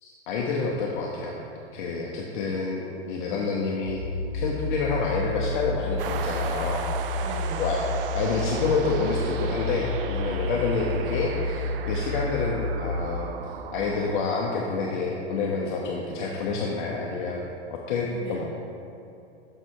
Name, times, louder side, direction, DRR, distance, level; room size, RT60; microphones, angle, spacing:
voice 1, 0.0-1.4 1.7-4.0 4.3-6.9 7.6-7.9 8.1-17.4 17.7-18.4, left 4 dB, 45° left, -2 dB, 0.8 m, -28 dB
sound 1, 3.9-13.1, left 1 dB, 70° left, 1.1 m, -31 dB
sound 2, 6.0-17.6, right 7 dB, 55° right, 0.5 m, -37 dB
voice 2, 7.2-7.8 18.1-18.4, right 2 dB, 80° right, -2 dB, 1.9 m, -39 dB
6.6 x 6.4 x 4.6 m, 2.6 s
hypercardioid pair, 150°, 34 cm